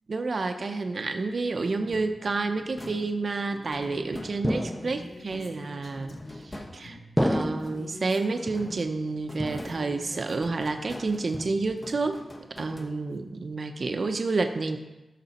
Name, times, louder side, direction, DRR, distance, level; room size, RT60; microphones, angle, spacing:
voice 1, 0.1-6.2 6.4-12.2 12.6-14.8, right 3 dB, 45° right, 6 dB, 0.6 m, -29 dB
sound 1, 1.8-4.8 5.3-8.1 8.4-13.4, left 1 dB, 20° left, 0.9 m, -46 dB
sound 2, 4.4-5.3 6.1-6.7 7.2-8.0 8.5-9.1 9.4-10.2 10.5-10.9 11.3-11.9, equal, ahead, 0.3 m, -31 dB
Female speech woman speaking, 4.7-6.6 7.6-9.0 9.5-10.4, left 2 dB, 50° left, 1.2 m, -47 dB
13.5 x 6.0 x 4.2 m, 1.0 s
wide cardioid pair, 170°, 0 cm